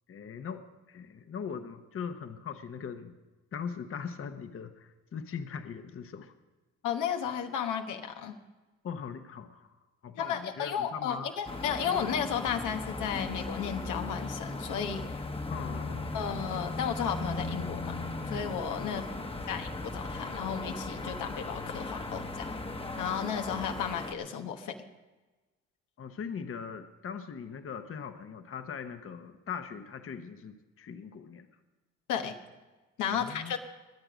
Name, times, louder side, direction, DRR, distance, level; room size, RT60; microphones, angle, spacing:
voice 1, 0.1-0.6 0.9-3.1 3.5-6.3 8.8-9.7 10.0-11.3 15.5-16.2 18.8-19.3 26.0-31.5 33.1-33.5, left 6 dB, 45° left, 8 dB, 1.0 m, -40 dB
voice 2, 6.8-8.4 10.2-15.2 16.1-17.9 18.3-19.1 19.5-22.5 23.0-24.8 32.1-32.3 33.0-33.6, left 8 dB, 85° left, 5 dB, 1.2 m, -33 dB
sound 1, 11.5-24.1, left 2 dB, 20° left, 1.1 m, -37 dB
21.5 x 7.8 x 5.1 m, 1.2 s
cardioid pair, 90°, 30 cm